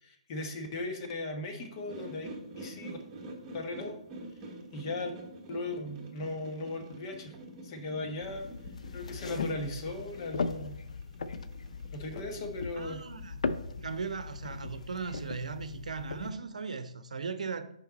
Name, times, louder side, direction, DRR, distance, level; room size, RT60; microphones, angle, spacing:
voice 1, 0.0-2.3 2.6-3.0 3.5-4.0 4.7-5.1 5.5-7.3 7.6-8.5 8.9-10.8 11.9-13.0, left 2 dB, 35° left, 1.1 m, -37 dB
sound 1, 1.8-13.5, right 1 dB, 25° right, 1.2 m, -47 dB
sound 2, 8.2-16.3, left 4 dB, 70° left, 0.5 m, -38 dB
voice 2, 12.7-13.4 13.8-17.7, right 5 dB, 75° right, 0.6 m, -38 dB
5.8 x 4.5 x 4.0 m
figure-of-eight pair, 140°, 4 cm